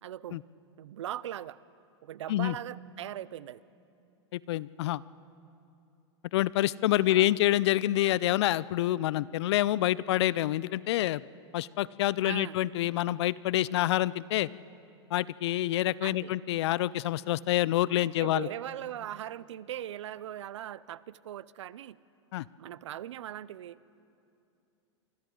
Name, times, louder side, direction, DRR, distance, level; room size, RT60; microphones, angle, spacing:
voice 1, 0.0-0.4 0.8-1.6 2.0-3.6 7.1-7.3 12.2-12.6 16.0-16.3 18.0-22.0 22.6-23.8, right 11 dB, 75° right, 20 dB, 0.5 m, -40 dB
voice 2, 4.3-5.0 6.3-11.2 11.5-14.5 15.1-18.5 22.3-22.4, left 15 dB, 65° left, 21 dB, 0.4 m, -27 dB
28.0 x 24.5 x 3.8 m, 2.7 s
hypercardioid pair, 110°, 15 cm